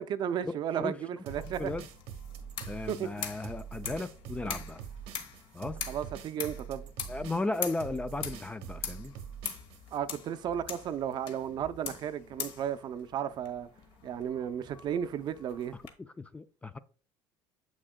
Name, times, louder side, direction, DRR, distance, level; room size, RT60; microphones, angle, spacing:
voice 1, 0.0-1.7 2.9-3.1 5.9-6.9 9.9-13.7 14.0-15.7, right 9 dB, 50° right, 0.5 m, -34 dB
sound 1, 1.3-15.9, left 7 dB, 65° left, 1.2 m, -43 dB
sound 2, 1.3-10.0, right 9 dB, 75° right, 0.9 m, -44 dB
voice 2, 2.7-4.8 5.5-5.8 7.1-9.1 16.0-16.8, left 2 dB, 15° left, 0.3 m, -35 dB
7.6 x 6.2 x 2.2 m
supercardioid pair, 105°, 10 cm